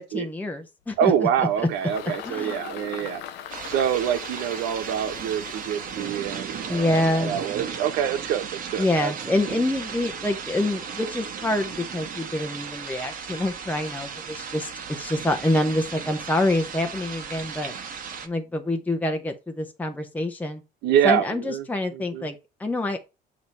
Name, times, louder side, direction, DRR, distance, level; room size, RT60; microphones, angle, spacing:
voice 1, 0.0-1.5 2.2-2.6 6.7-7.3 8.8-17.7 18.2-20.6 21.0-23.0, left 1 dB, 10° left, 0.9 m, -26 dB
Engine, 0.9-7.5, left 9 dB, 90° left, 0.9 m, -41 dB
voice 2, 1.0-3.2 3.7-9.1 20.8-21.7 21.9-22.3, right 9 dB, 90° right, 1.0 m, -26 dB
sound 1, 3.5-18.3, right 6 dB, 55° right, 1.4 m, -35 dB
8.0 x 3.0 x 5.3 m
cardioid pair, 110°, 17 cm